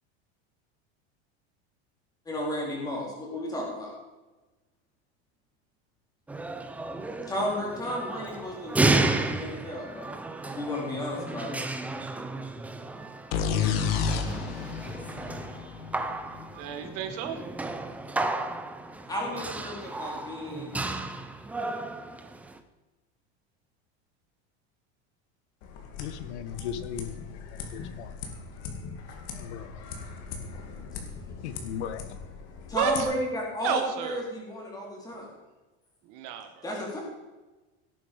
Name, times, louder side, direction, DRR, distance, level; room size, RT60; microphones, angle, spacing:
voice 1, 2.3-3.9 7.3-10.1 10.5-11.6 19.1-20.7 32.7-35.3 36.6-37.0, equal, 10° left, 4.1 m, -33 dB
sound 1, 6.3-22.6, right 2 dB, 5° right, 0.5 m, -33 dB
sound 2, 13.3-17.0, left 7 dB, 60° left, 1.9 m, -30 dB
voice 2, 16.3-17.4 32.7-33.1 33.6-34.3 36.0-36.7, right 8 dB, 45° right, 1.5 m, -32 dB
sound 3, 25.6-33.0, left 5 dB, 45° left, 2.5 m, -40 dB
voice 3, 26.0-28.2 29.4-29.8 31.4-32.1, left 8 dB, 85° left, 1.5 m, -38 dB
17.5 x 9.4 x 5.3 m
supercardioid pair, 170°, 33 cm